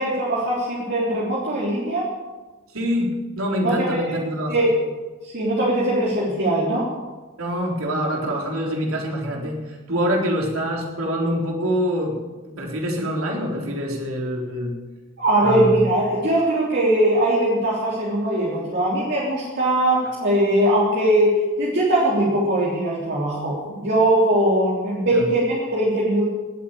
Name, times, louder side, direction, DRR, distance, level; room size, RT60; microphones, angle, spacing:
voice 1, 0.0-2.1 3.6-4.0 4.5-4.7 5.2-6.9 15.2-26.3, right 1 dB, 55° right, -6 dB, 3.4 m, -20 dB
voice 2, 2.7-4.5 7.4-12.2 12.6-14.8 15.4-15.8 25.1-25.3, equal, 80° right, -1 dB, 3.9 m, -25 dB
18.5 x 8.5 x 8.8 m, 1.3 s
head